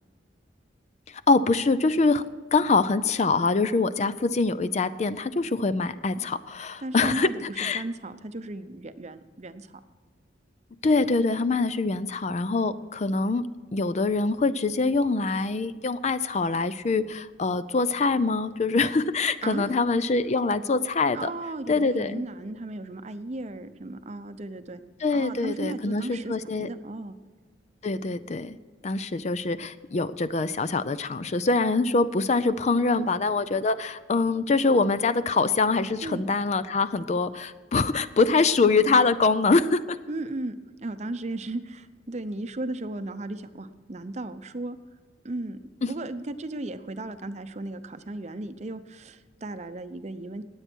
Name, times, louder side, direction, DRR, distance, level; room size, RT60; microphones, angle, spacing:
voice 1, 1.1-2.2 2.5-7.8 10.8-13.4 13.7-21.3 21.7-22.2 25.0-26.7 27.8-28.6 28.8-40.0 45.8-45.9, left 3 dB, 35° left, 14 dB, 0.4 m, -24 dB
voice 2, 6.8-9.8 19.4-19.8 21.1-24.8 25.1-27.1 33.0-33.1 36.0-36.2 40.1-40.5 40.8-44.8 45.2-45.6 45.9-50.4, right 2 dB, 35° right, 10 dB, 0.7 m, -35 dB
20.0 x 8.1 x 4.5 m, 1.5 s
head